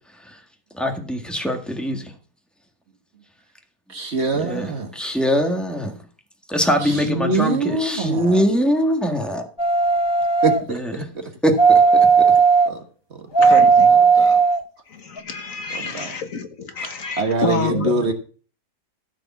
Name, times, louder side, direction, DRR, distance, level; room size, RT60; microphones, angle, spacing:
voice 1, 0.7-2.1 4.3-5.9 6.5-9.4 10.6-11.1 11.4-11.8 12.2-12.3, equal, ahead, 1.5 m, -22 dB
voice 2, 3.9-4.9 6.8-8.4 10.4-10.8 12.7-12.8 13.4-13.6 13.9-14.4 15.7-16.1 16.8-16.9 17.2-18.1, right 3 dB, 45° right, 1.5 m, -24 dB
sound 1, 9.6-10.6 11.6-12.7 13.3-14.6 15.2-15.3, right 5 dB, 35° left, 0.4 m, -15 dB
voice 3, 13.4-13.9 14.2-14.3 14.9-18.1, left 4 dB, 55° left, 1.6 m, -28 dB
14.0 x 5.2 x 7.2 m
omnidirectional pair, 1.7 m